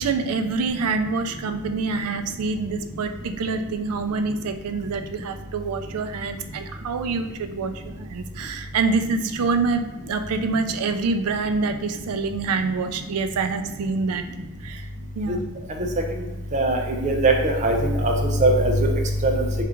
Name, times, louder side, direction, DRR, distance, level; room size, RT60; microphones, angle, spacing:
voice 1, 0.0-14.2 14.6-14.9 15.1-15.4, right 4 dB, 85° right, 8 dB, 0.4 m, -26 dB
voice 2, 16.5-18.1 18.4-18.9 19.2-19.4, right 2 dB, 35° right, 1 dB, 0.5 m, -20 dB
3.6 x 2.4 x 4.4 m, 1.1 s
head